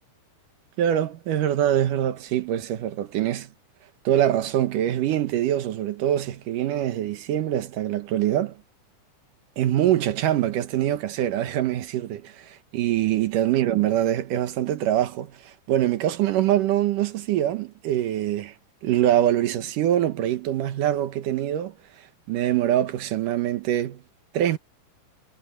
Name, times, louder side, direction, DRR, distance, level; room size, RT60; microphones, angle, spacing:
voice 1, 0.8-3.5 4.0-8.6 9.6-18.5 18.8-21.7 22.3-24.0 24.3-24.6, right 12 dB, 80° right, 2.8 m, -24 dB
omnidirectional pair, 3.7 m